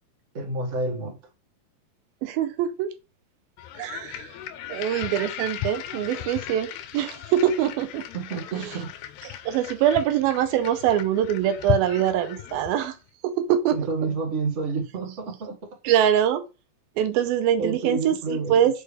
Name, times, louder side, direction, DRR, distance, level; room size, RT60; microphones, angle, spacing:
voice 1, 0.3-1.2 8.1-8.9 13.7-15.6 17.6-18.6, right 3 dB, 50° right, 0.8 m, -29 dB
voice 2, 2.2-2.9 3.8-4.4 4.7-8.0 8.5-8.8 9.2-13.0 13.2-13.8 15.8-16.4 17.0-18.8, right 10 dB, 85° right, 2.4 m, -24 dB
sound 1, 3.6-12.9, left 12 dB, 80° left, 2.5 m, -36 dB
6.8 x 4.7 x 3.3 m
omnidirectional pair, 4.4 m